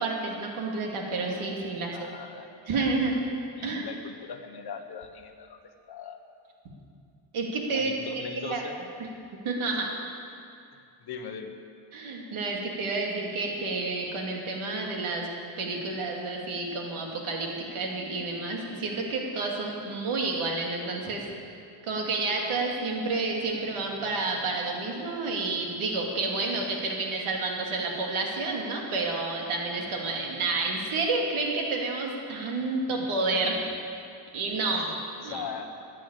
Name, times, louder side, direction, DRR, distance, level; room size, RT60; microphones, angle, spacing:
voice 1, 0.0-2.0 2.7-3.1 3.6-3.9 7.3-7.9 8.4-8.6 9.4-9.9 11.9-15.3 15.6-21.2 21.8-33.6 34.3-34.8 35.2-35.5, right 3 dB, 90° right, 0 dB, 2.8 m, -30 dB
voice 2, 1.8-2.8 3.1-3.2 3.5-5.6 5.9-6.2 7.7-8.8 11.0-11.5 33.3-33.4 34.6-35.8, left 6 dB, 50° left, 6 dB, 1.3 m, -40 dB
15.0 x 10.5 x 8.3 m, 2.5 s
wide cardioid pair, 170°, 48 cm